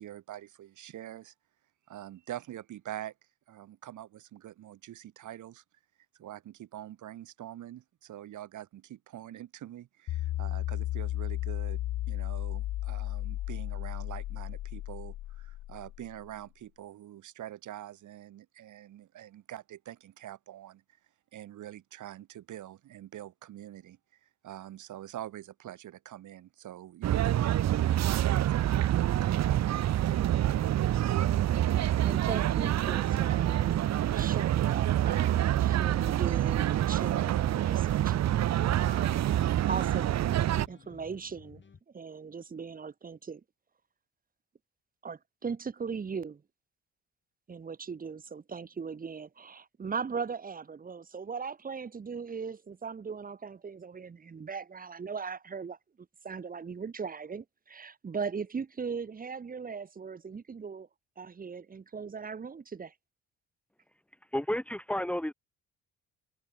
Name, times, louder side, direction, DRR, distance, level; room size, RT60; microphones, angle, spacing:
voice 1, 0.0-1.3 1.9-3.1 3.5-5.6 6.2-11.8 12.1-20.8 21.3-29.6 29.9-30.2, right 12 dB, 75° right, 5.9 m, -45 dB
sound 1, 10.1-16.3, left 15 dB, 60° left, 0.4 m, -34 dB
sound 2, 27.0-40.7, right 12 dB, 60° right, 0.9 m, -27 dB
sound 3, 30.2-41.8, left 5 dB, 40° left, 6.7 m, -54 dB
voice 2, 32.0-40.2 40.7-41.6 41.9-43.4 45.0-46.4 47.5-55.8 56.2-60.9 61.2-62.9, right 5 dB, 30° right, 1.0 m, -39 dB
voice 3, 64.3-65.3, left 1 dB, 5° left, 1.6 m, -31 dB
cardioid pair, 90°, 30 cm